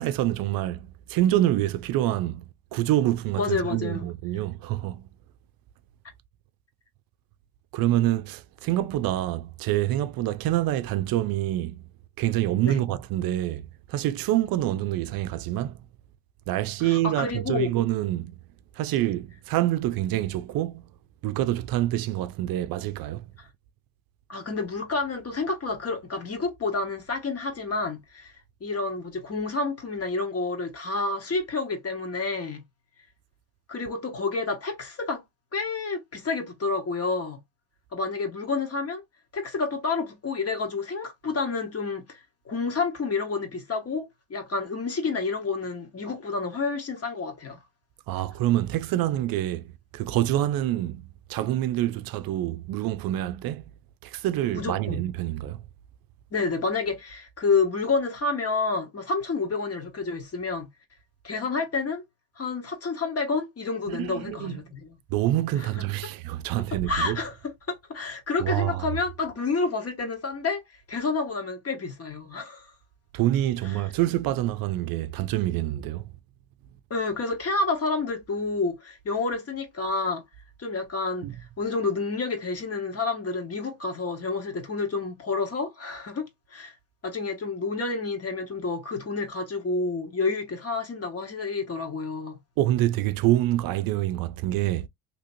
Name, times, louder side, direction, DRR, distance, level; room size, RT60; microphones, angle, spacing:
voice 1, 0.0-2.4 2.7-5.1 7.7-11.8 12.2-15.8 16.5-18.4 18.8-20.8 21.2-23.2 48.1-49.7 49.9-53.7 54.0-55.6 63.9-64.6 65.1-67.2 68.4-68.9 73.1-76.1 81.2-81.3 92.6-94.9, right 14 dB, 70° right, 0.5 m, -26 dB
voice 2, 3.4-4.1 12.6-12.8 16.8-17.7 24.3-28.3 28.6-32.6 33.7-35.2 35.5-37.4 37.9-39.0 39.3-47.6 54.5-55.0 56.3-60.7 61.2-62.0 62.4-65.0 65.6-66.1 66.7-70.6 70.9-72.7 73.6-73.8 76.9-80.2 80.6-81.3 81.6-86.7 87.0-92.4, left 4 dB, 40° left, 1.3 m, -29 dB
2.9 x 2.8 x 2.6 m
supercardioid pair, 80°, 37 cm